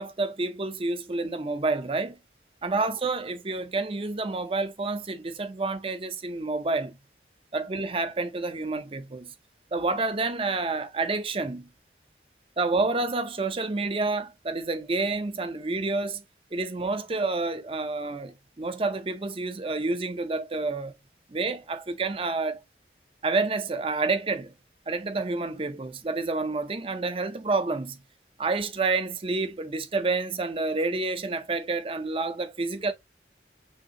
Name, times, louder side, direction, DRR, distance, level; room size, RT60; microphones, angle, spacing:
voice 1, 0.0-2.2 2.6-7.0 7.5-9.3 9.7-11.7 12.6-16.2 16.5-20.9 21.3-22.6 23.2-24.5 24.9-28.0 28.4-32.9, right 3 dB, 30° right, 0.6 m, -29 dB
6.5 x 2.8 x 2.8 m
head